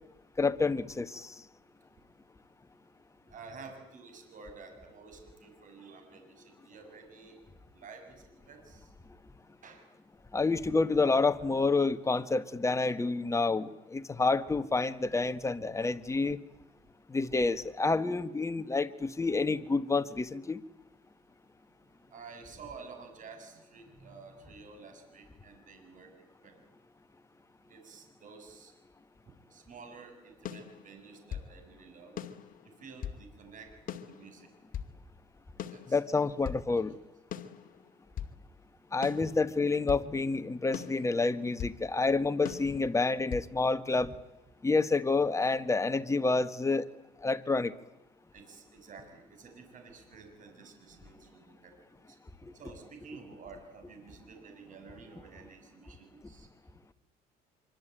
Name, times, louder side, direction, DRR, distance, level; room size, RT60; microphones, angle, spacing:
voice 1, 0.4-1.3 10.3-16.4 17.1-20.6 35.9-36.9 38.9-44.1 44.6-46.9 47.2-47.7 52.4-52.5, left 3 dB, 15° left, 10 dB, 1.6 m, -28 dB
voice 2, 3.3-7.4 7.7-8.9 9.6-9.9 22.1-26.7 27.7-28.8 29.5-32.2 32.8-33.7 34.1-34.5 35.6-36.3 36.7-36.8 39.2-39.3 48.3-52.2 52.5-56.5, right 5 dB, 50° right, 5 dB, 6.8 m, -51 dB
sound 1, 30.5-31.5 32.2-33.2 33.9-35.0 35.6-36.6 37.3-38.4 39.0-40.1 40.7-41.8 42.5-43.5, left 9 dB, 55° left, 2.2 m, -41 dB
25.5 x 24.5 x 9.1 m, 0.96 s
cardioid pair, 110°, 17 cm